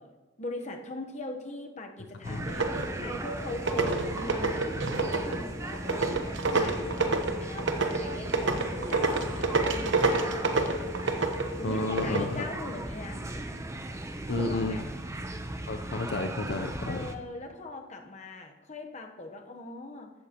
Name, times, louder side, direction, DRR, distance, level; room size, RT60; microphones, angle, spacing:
voice 1, 0.0-4.7 5.0-6.1 6.5-10.4 11.6-13.3 14.3-14.9 16.8-20.1, left 2 dB, 35° left, 4 dB, 0.9 m, -41 dB
sound 1, 2.2-17.2, right 1 dB, 15° right, 0.6 m, -37 dB
sound 2, 2.5-3.1 3.5-12.3, right 3 dB, 65° right, 1.0 m, -28 dB
voice 2, 11.6-12.4 14.3-14.8 15.7-17.1, left 2 dB, 55° left, 4 dB, 0.6 m, -31 dB
15.0 x 12.0 x 2.9 m, 1.2 s
head